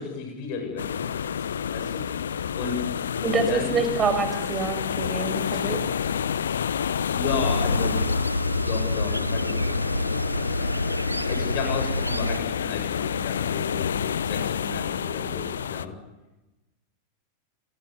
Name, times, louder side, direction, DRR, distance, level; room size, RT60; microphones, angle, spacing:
voice 1, 0.0-1.5 1.7-3.0 3.5-3.8 7.1-8.0 8.6-9.6 11.1-15.9, left 6 dB, 45° left, 4 dB, 7.9 m, -33 dB
sound 1, 0.8-15.9, left 8 dB, 65° left, 0.9 m, -29 dB
voice 2, 3.2-5.8, right 4 dB, 20° right, 9 dB, 5.8 m, -26 dB
sound 2, 7.3-12.4, equal, 85° right, 0.8 m, -28 dB
28.0 x 20.0 x 9.7 m, 1.0 s
figure-of-eight pair, 90°, 0 cm